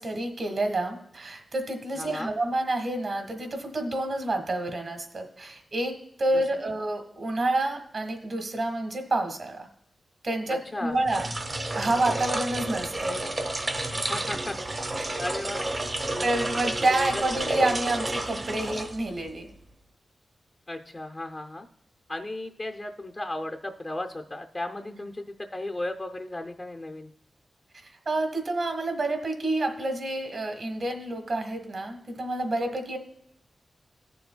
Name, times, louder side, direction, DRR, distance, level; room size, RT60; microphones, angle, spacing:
voice 1, 0.0-9.7 10.2-11.3 11.7-13.2 16.2-19.5 24.9-25.0 27.8-33.0, right 2 dB, 55° right, 6 dB, 1.2 m, -28 dB
voice 2, 2.0-2.3 6.3-6.4 10.5-11.0 14.1-15.8 16.0-16.4 16.9-17.6 20.7-21.7 22.1-25.3 25.5-27.1, left 1 dB, 25° left, 3 dB, 0.5 m, -35 dB
sound 1, 11.0-19.4, right 2 dB, 35° right, 0.8 m, -31 dB
16.0 x 6.9 x 2.2 m, 0.78 s
wide cardioid pair, 125°, 0 cm